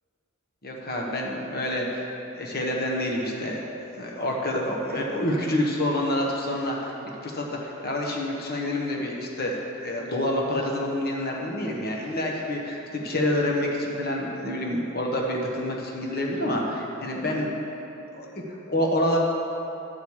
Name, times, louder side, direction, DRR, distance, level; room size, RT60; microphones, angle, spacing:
voice 1, 0.6-2.1 2.3-3.6 3.9-6.9 7.2-17.6 18.1-19.2, left 1 dB, 50° left, -1 dB, 1.2 m, -27 dB
11.5 x 4.7 x 7.2 m, 2.9 s
head